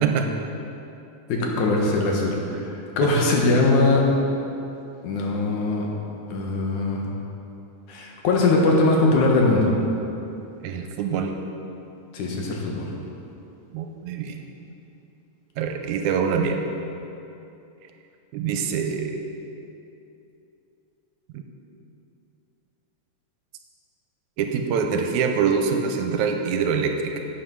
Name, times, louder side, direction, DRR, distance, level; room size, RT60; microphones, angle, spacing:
voice 1, 1.3-4.0 5.0-5.9 6.3-7.0 7.9-9.7 12.1-12.9, left 2 dB, 85° left, -1 dB, 2.7 m, -21 dB
voice 2, 10.6-11.3 13.7-14.4 15.6-16.6 18.3-19.2 21.3-21.4 24.4-27.2, right 6 dB, 85° right, 4 dB, 2.1 m, -24 dB
11.0 x 8.3 x 4.7 m, 2.8 s
omnidirectional pair, 3.4 m